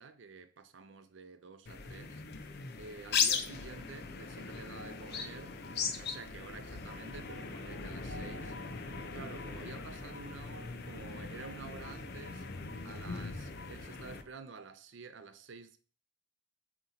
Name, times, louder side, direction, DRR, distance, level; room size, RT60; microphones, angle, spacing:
voice 1, 0.0-2.2 2.7-5.6 6.0-8.5 9.1-12.5 12.8-15.8, right 4 dB, 60° right, 0.5 m, -50 dB
sound 1, 1.7-14.2, left 6 dB, 55° left, 0.6 m, -39 dB
I just need to close my eyes (without voice), 4.4-14.4, left 1 dB, 90° left, 1.1 m, -54 dB
7.7 x 3.1 x 4.1 m
head